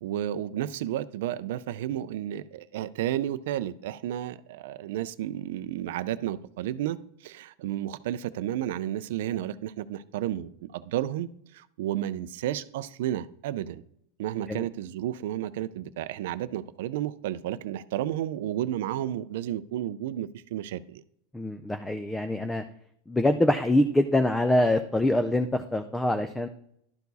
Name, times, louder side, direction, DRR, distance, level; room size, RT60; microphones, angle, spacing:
voice 1, 0.0-13.8 14.2-21.0, right 12 dB, 70° right, 13 dB, 0.4 m, -32 dB
voice 2, 21.3-22.6 23.1-26.5, left 1 dB, 5° left, 8 dB, 0.4 m, -24 dB
11.5 x 4.6 x 4.0 m, 0.72 s
supercardioid pair, 150°, 0 cm